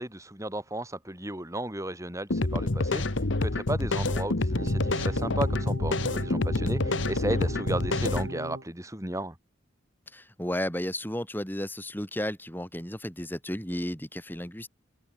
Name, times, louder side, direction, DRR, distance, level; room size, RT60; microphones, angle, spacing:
voice 1, 0.0-3.0 3.4-9.3, right 1 dB, 15° right, 4.0 m, -34 dB
sound 1, 2.3-8.3, left 2 dB, 65° left, 1.3 m, -27 dB
sound 2, 4.6-8.7, right 1 dB, 60° right, 5.1 m, -38 dB
voice 2, 10.1-14.7, left 1 dB, 10° left, 4.1 m, -33 dB
head